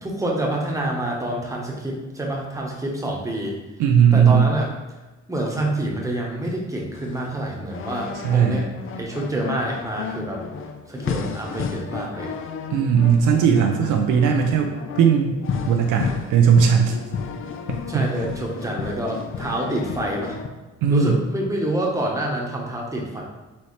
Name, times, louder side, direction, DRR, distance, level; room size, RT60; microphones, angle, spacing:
voice 1, 0.0-3.5 4.1-4.7 5.3-8.7 9.0-10.4 10.9-12.3 17.9-20.4 20.9-23.2, right 1 dB, 10° right, -2 dB, 1.0 m, -27 dB
voice 2, 3.8-4.5 8.2-8.6 12.7-15.4 15.7-17.0 17.7-18.1 20.8-21.2, right 7 dB, 90° right, 3 dB, 0.5 m, -18 dB
sound 1, 6.9-20.5, left 6 dB, 45° left, 0.4 m, -32 dB
4.2 x 3.1 x 3.2 m, 1.1 s
cardioid pair, 90°, 30 cm